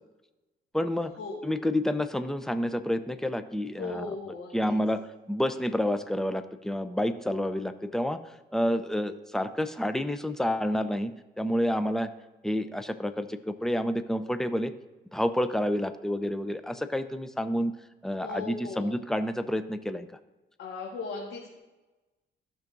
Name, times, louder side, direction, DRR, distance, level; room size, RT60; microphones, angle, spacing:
voice 1, 0.7-1.1 1.4-4.2 4.5-8.2 8.5-12.1 12.4-14.7 15.1-17.8 18.0-20.1, left 1 dB, ahead, 10 dB, 0.6 m, -29 dB
voice 2, 3.8-4.7 18.2-18.9 20.6-21.6, left 4 dB, 75° left, -3 dB, 1.6 m, -37 dB
15.0 x 5.9 x 2.6 m, 1.1 s
cardioid pair, 90°, 20 cm